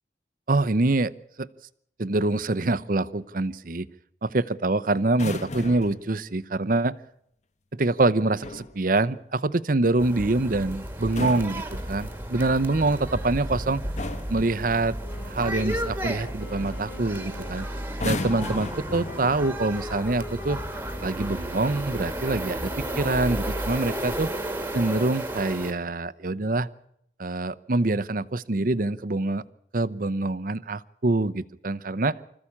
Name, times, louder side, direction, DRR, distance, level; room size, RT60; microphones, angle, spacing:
voice 1, 0.5-1.1 1.4-1.5 2.0-3.9 4.2-7.0 7.7-13.8 14.3-15.0 15.3-17.7 18.0-20.6 21.0-24.3 24.7-26.7 27.2-29.4 29.7-32.2, right 2 dB, 50° right, 14 dB, 0.7 m, -25 dB
sound 1, 5.1-6.1 8.2-8.8 10.9-12.3 13.3-13.6 14.0-14.5 16.1-16.3 16.6-16.9 17.9-19.6 20.5-20.7, left 2 dB, 40° left, 1.1 m, -35 dB
sound 2, 10.0-25.7, right 1 dB, 10° right, 1.6 m, -33 dB
sound 3, 15.0-25.4, left 2 dB, 70° left, 4.3 m, -45 dB
25.5 x 14.5 x 8.6 m, 0.74 s
head